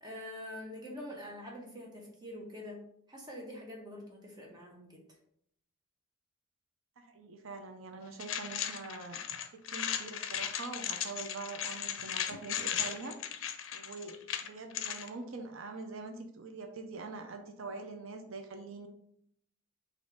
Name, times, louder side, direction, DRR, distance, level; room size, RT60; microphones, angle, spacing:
voice 1, 0.0-2.8 3.1-5.0, left 1 dB, 20° right, -2 dB, 1.1 m, -45 dB
voice 2, 7.0-9.2 9.5-13.2 13.7-18.9, right 3 dB, 85° right, 5 dB, 0.5 m, -44 dB
sound 1, 8.2-15.1, left 9 dB, 75° left, 0.5 m, -37 dB
4.3 x 2.6 x 4.5 m, 0.71 s
head